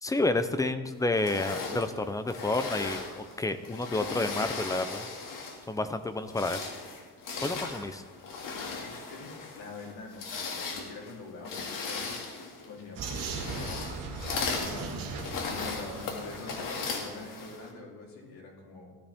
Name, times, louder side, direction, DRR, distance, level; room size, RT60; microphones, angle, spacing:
voice 1, 0.0-5.1 5.7-6.6 7.4-8.0, left 2 dB, 10° left, 10 dB, 0.4 m, -30 dB
sound 1, 1.1-5.7 6.2-17.7, left 4 dB, 60° left, 2.1 m, -37 dB
voice 2, 8.5-12.2 12.6-13.9 14.3-19.0, left 3 dB, 75° left, -2 dB, 3.2 m, -45 dB
Vehicle, 13.0-16.9, right 4 dB, 60° right, 1.8 m, -38 dB
17.0 x 12.5 x 3.5 m, 1.5 s
cardioid pair, 165°, 38 cm